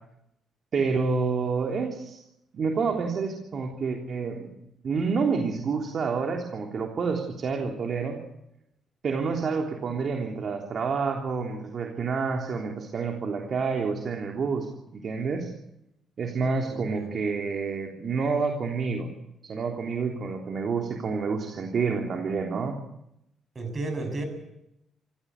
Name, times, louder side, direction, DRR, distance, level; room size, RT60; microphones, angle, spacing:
voice 1, 0.7-2.2 2.5-4.5 4.8-8.2 9.0-15.5 16.2-19.1 19.4-22.8, right 5 dB, 50° right, 2 dB, 3.4 m, -28 dB
voice 2, 16.6-17.1 23.6-24.3, right 2 dB, 30° right, 7 dB, 7.2 m, -33 dB
27.0 x 16.0 x 8.3 m, 0.81 s
cardioid pair, 90°, 0 cm